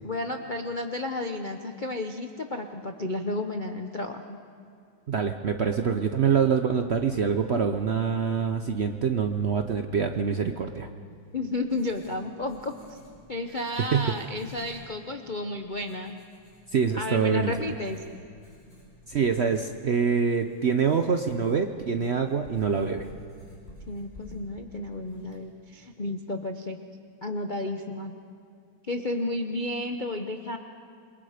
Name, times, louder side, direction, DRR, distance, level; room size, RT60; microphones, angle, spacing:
voice 1, 0.0-4.4 5.6-5.7 11.3-13.0 13.3-16.2 17.0-18.0 23.9-26.8 27.2-28.2 28.9-30.6, left 2 dB, 50° left, 4 dB, 0.6 m, -32 dB
voice 2, 5.1-10.9 13.9-14.2 16.7-17.5 19.1-23.1, right 6 dB, 75° right, 6 dB, 0.6 m, -25 dB
Writing, 11.1-25.9, equal, 30° left, 5.7 m, -53 dB
28.0 x 22.5 x 5.0 m, 2.4 s
omnidirectional pair, 2.2 m